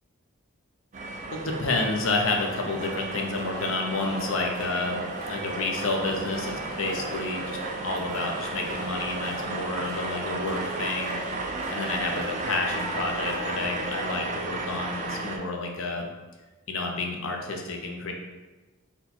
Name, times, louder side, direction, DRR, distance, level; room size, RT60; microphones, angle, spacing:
sound 1, 0.9-15.4, right 2 dB, 35° right, 0.4 m, -34 dB
voice 1, 1.3-5.0 5.3-11.2 11.7-16.1 16.7-18.1, left 3 dB, 65° left, 2 dB, 0.6 m, -30 dB
sound 2, 2.5-13.8, right 1 dB, 65° right, 0.8 m, -41 dB
4.2 x 2.2 x 4.2 m, 1.2 s
head